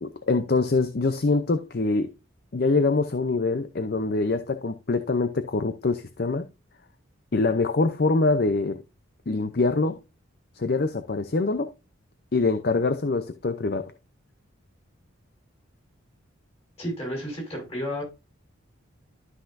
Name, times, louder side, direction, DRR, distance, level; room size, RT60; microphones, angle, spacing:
voice 1, 0.0-2.1 2.5-6.4 7.3-8.8 9.3-10.0 10.5-11.7 12.3-13.9, left 3 dB, 50° left, 0.6 m, -24 dB
voice 2, 16.8-18.0, equal, 30° left, 5.4 m, -31 dB
12.5 x 5.8 x 2.6 m
head